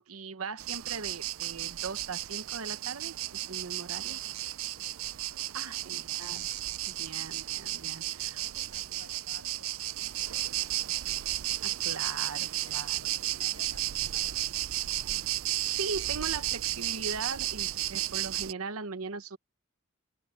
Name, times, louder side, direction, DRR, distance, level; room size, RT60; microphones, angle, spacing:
voice 1, 0.0-3.1 3.5-4.2 5.5-6.5 6.9-8.4 11.6-13.0 15.6-19.4, right 4 dB, 90° right, 1.0 m, -39 dB
sound 1, 0.6-18.5, right 15 dB, 75° right, 0.5 m, -33 dB
voice 2, 5.6-6.4 8.0-11.0 12.4-15.3, left 3 dB, 80° left, 6.2 m, -58 dB
head